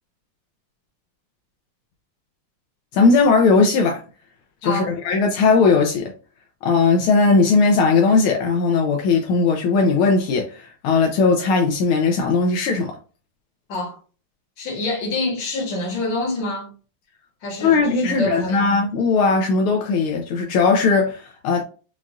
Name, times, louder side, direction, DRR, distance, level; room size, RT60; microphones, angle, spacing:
voice 1, 2.9-4.0 4.6-6.1 6.6-13.0 17.6-21.6, left 4 dB, 80° left, 1.5 m, -18 dB
voice 2, 14.6-16.7 17.4-18.6, left 2 dB, 60° left, 1.9 m, -26 dB
5.7 x 2.4 x 2.4 m
omnidirectional pair, 2.4 m